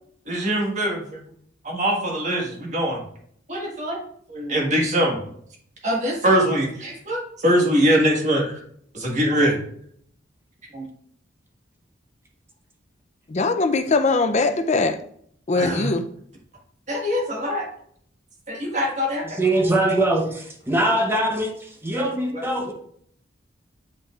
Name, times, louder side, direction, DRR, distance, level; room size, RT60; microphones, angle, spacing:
voice 1, 0.3-1.2 1.6-3.0 3.5-4.0 4.3-5.2 5.8-8.6 8.9-9.6 10.7-10.9 15.5-15.9 16.9-17.6 18.5-19.3, equal, 40° right, 1.6 m, -22 dB
voice 2, 13.3-15.0 15.5-16.0, left 3 dB, 35° left, 0.5 m, -21 dB
voice 3, 19.2-22.8, right 1 dB, 10° right, 0.9 m, -22 dB
8.3 x 5.2 x 2.4 m
head